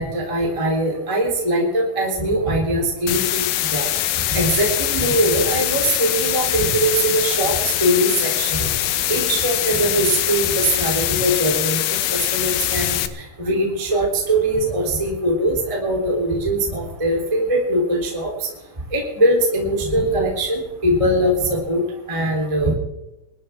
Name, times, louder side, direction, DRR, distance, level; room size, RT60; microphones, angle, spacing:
voice 1, 0.0-3.4 3.7-3.9 4.3-7.5 7.8-8.7 9.1-13.0 13.4-18.3 18.9-21.8 22.1-22.7, right 1 dB, 10° right, -2 dB, 3.0 m, -21 dB
sound 1, 3.1-13.1, left 13 dB, 75° left, 2.6 m, -23 dB
23.5 x 13.5 x 3.6 m, 0.94 s
omnidirectional pair, 4.6 m